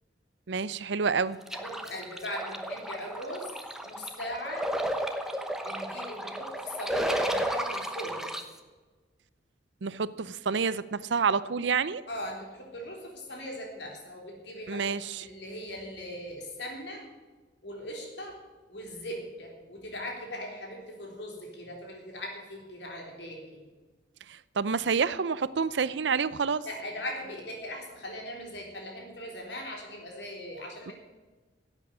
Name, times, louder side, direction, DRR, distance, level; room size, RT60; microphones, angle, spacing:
voice 1, 0.5-1.4 9.8-12.0 14.7-15.3 24.3-26.7 30.9-31.0, right 5 dB, 75° right, 17 dB, 0.6 m, -28 dB
voice 2, 1.5-3.5 3.8-4.7 5.6-8.4 12.1-17.1 17.6-18.4 18.7-23.7 26.7-30.9, equal, 70° left, 1 dB, 3.7 m, -40 dB
sound 1, 1.5-8.4, right 1 dB, 5° right, 0.9 m, -33 dB
11.5 x 8.5 x 9.8 m, 1.3 s
head